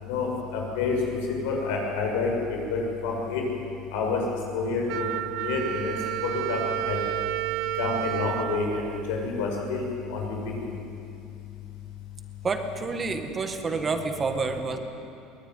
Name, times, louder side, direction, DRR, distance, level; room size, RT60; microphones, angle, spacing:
voice 1, 0.0-0.9 1.3-2.3 2.7-3.4 3.9-4.2 4.5-5.1 5.4-5.9 6.2-6.6 6.8-7.0 7.8-9.9 10.1-10.4 13.7-13.8, left 4 dB, 90° left, 0 dB, 7.1 m, -28 dB
Wind instrument woodwind instrument, 4.9-9.7, right 16 dB, 65° right, 0.6 m, -31 dB
voice 2, 12.4-14.8, right 4 dB, 20° right, 6 dB, 1.7 m, -28 dB
23.0 x 20.0 x 9.8 m, 2.6 s
cardioid pair, 155°, 0 cm